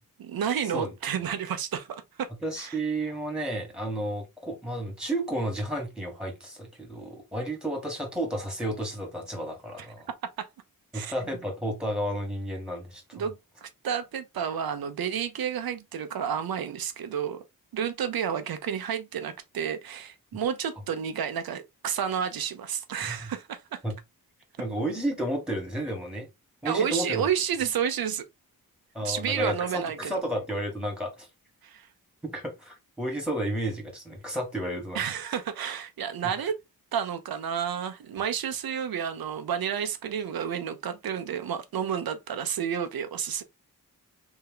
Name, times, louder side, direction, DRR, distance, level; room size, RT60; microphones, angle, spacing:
voice 1, 0.2-2.3 2.6-2.8 9.8-9.9 10.4-10.5 10.9-11.1 13.1-17.4 17.7-23.8 26.6-28.2 29.0-30.1 31.6-31.9 34.9-36.6 36.9-43.4, right 8 dB, 80° right, 0.6 m, -31 dB
voice 2, 2.4-10.1 10.9-13.2 23.1-23.3 23.8-24.0 24.6-26.3 26.6-27.3 28.9-31.3 32.2-35.0, right 1 dB, ahead, 1.8 m, -32 dB
3.4 x 2.8 x 3.6 m
wide cardioid pair, 85°, 36 cm